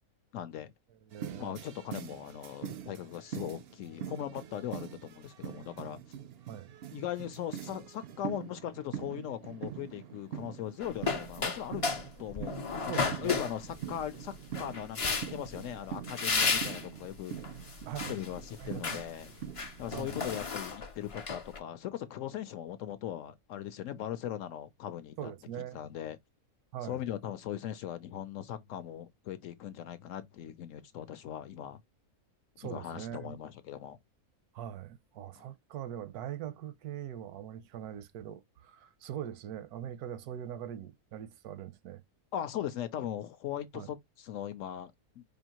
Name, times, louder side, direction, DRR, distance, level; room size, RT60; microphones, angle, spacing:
voice 1, 0.3-0.7 1.4-6.0 6.9-11.9 12.2-17.3 18.1-19.3 19.8-25.3 25.7-26.2 26.8-31.8 32.6-34.0 35.4-35.5 42.3-45.2, left 11 dB, 70° left, 0.8 m, -39 dB
voice 2, 1.0-1.6 6.5-6.7 12.9-13.5 17.9-18.1 18.6-19.1 19.9-20.2 25.2-25.8 26.7-27.1 32.6-33.4 34.5-42.0 43.7-43.9, right 10 dB, 85° right, 1.1 m, -42 dB
sound 1, 1.1-20.1, right 9 dB, 65° right, 0.6 m, -44 dB
sound 2, 10.8-12.1 12.3-14.0 14.5-15.5 16.0-16.9 17.4-18.3 18.6-19.0 19.4-21.6, left 4 dB, 45° left, 0.4 m, -33 dB
4.8 x 2.6 x 2.9 m
omnidirectional pair, 1.6 m